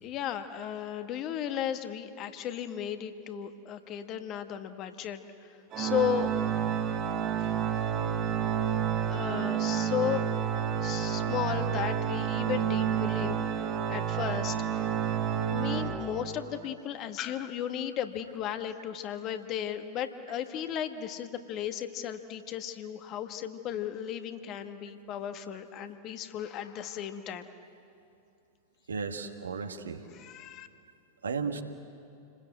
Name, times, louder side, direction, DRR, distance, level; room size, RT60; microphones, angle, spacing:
voice 1, 0.0-5.2 5.8-6.3 7.4-7.6 9.1-10.2 10.8-13.5 13.9-14.7 15.5-27.5 30.1-30.7, left 10 dB, 35° left, 8 dB, 1.6 m, -35 dB
Organ, 5.7-16.6, right 8 dB, 35° right, 1.7 m, -30 dB
voice 2, 28.9-30.0 31.2-31.6, right 5 dB, 70° right, 6 dB, 1.7 m, -34 dB
29.0 x 20.5 x 8.1 m, 2.6 s
figure-of-eight pair, 90°, 0 cm